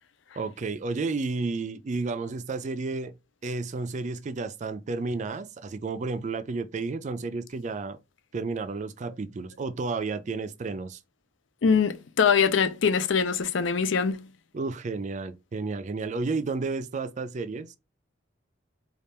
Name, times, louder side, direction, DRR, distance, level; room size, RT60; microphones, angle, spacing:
voice 1, 0.4-3.1 3.4-8.0 8.3-11.0 14.5-17.8, right 3 dB, 40° right, 0.4 m, -32 dB
voice 2, 11.6-14.2, left 6 dB, 70° left, 0.5 m, -23 dB
3.4 x 2.4 x 4.2 m
head